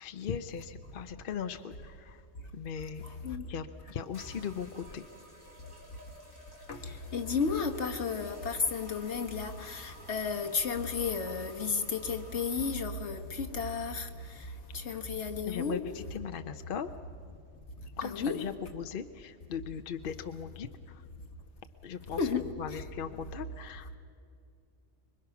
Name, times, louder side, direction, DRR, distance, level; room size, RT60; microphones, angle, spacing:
voice 1, 0.0-2.2 2.5-3.0 3.5-5.0 15.4-15.8 16.1-16.9 18.0-20.7 21.8-22.2 22.6-24.0, left 7 dB, 55° left, 0.8 m, -38 dB
sound 1, 4.1-12.9, equal, 20° left, 4.0 m, -53 dB
voice 2, 6.7-14.1 14.7-15.8 18.0-18.4 22.2-22.4 22.7-22.8, left 5 dB, 70° left, 1.6 m, -33 dB
25.5 x 22.5 x 5.9 m
omnidirectional pair, 1.2 m